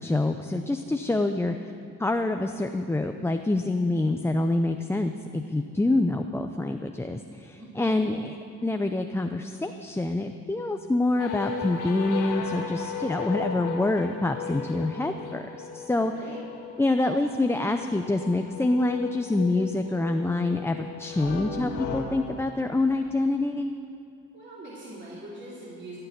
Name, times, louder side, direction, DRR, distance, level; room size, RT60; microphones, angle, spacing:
voice 1, 0.0-1.7 2.0-16.1 16.8-23.8, left 2 dB, 10° left, 6 dB, 0.5 m, -26 dB
voice 2, 7.6-8.0 16.0-16.4 24.3-26.0, right 1 dB, 40° right, -7 dB, 3.3 m, -42 dB
sound 1, 11.2-22.1, left 6 dB, 90° left, 1.8 m, -36 dB
16.0 x 6.8 x 9.6 m, 2.6 s
cardioid pair, 90°, 30 cm